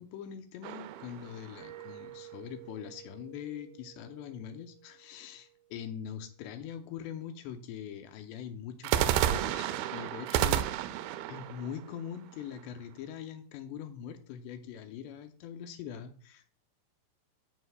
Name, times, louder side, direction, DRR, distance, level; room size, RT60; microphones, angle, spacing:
voice 1, 0.0-10.7 11.0-16.5, left 8 dB, 90° left, 7 dB, 2.9 m, -43 dB
sound 1, 0.6-2.1 8.8-12.8, right 12 dB, 90° right, 2.1 m, -31 dB
Mallet percussion, 1.6-6.2, right 13 dB, 50° right, 2.1 m, -52 dB
17.0 x 5.6 x 2.2 m, 0.42 s
omnidirectional pair, 4.9 m